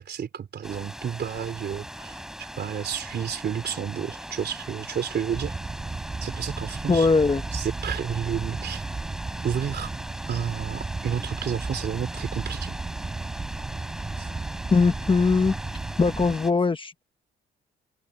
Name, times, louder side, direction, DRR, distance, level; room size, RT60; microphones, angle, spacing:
voice 1, 0.0-5.5 6.2-7.1 7.5-8.8 9.4-9.9 10.3-12.8, right 8 dB, 55° right, 3.7 m, -31 dB
sound 1, 0.6-16.5, equal, ahead, 3.4 m, -39 dB
sound 2, 5.3-16.4, right 3 dB, 25° right, 6.6 m, -34 dB
voice 2, 6.9-7.4 14.7-15.5 16.0-17.0, left 4 dB, 25° left, 1.2 m, -21 dB
cardioid pair, 90°, 20 cm